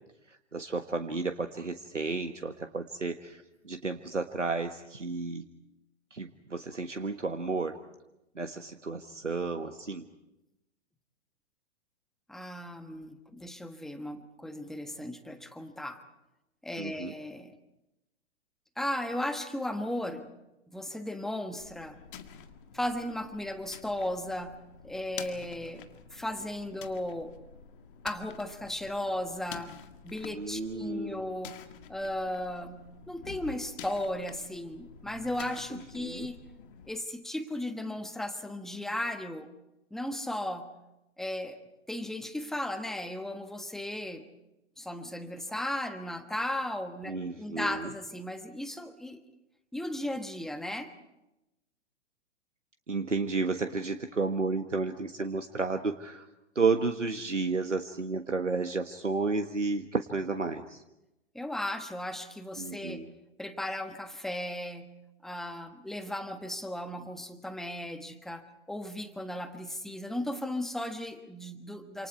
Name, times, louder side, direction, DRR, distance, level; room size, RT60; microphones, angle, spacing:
voice 1, 0.3-5.4 6.1-7.8 8.3-10.1 16.8-17.1 30.2-31.2 35.7-36.3 47.1-47.9 52.9-56.3 56.5-60.8 62.6-63.1, right 3 dB, 85° right, 6 dB, 1.5 m, -32 dB
voice 2, 12.3-16.0 16.6-17.6 18.8-20.3 20.7-22.0 22.7-24.6 24.8-25.8 26.1-27.3 28.0-29.7 30.0-31.6 31.9-32.8 33.1-36.4 36.9-39.5 39.9-40.7 41.2-41.6 41.9-44.2 44.8-49.2 49.7-50.9 61.3-63.1 63.4-64.9 65.2-72.1, left 1 dB, ahead, 9 dB, 1.3 m, -36 dB
sound 1, 21.6-36.9, left 8 dB, 45° left, 2.0 m, -49 dB
28.5 x 27.5 x 4.6 m, 0.94 s
figure-of-eight pair, 115°, 36 cm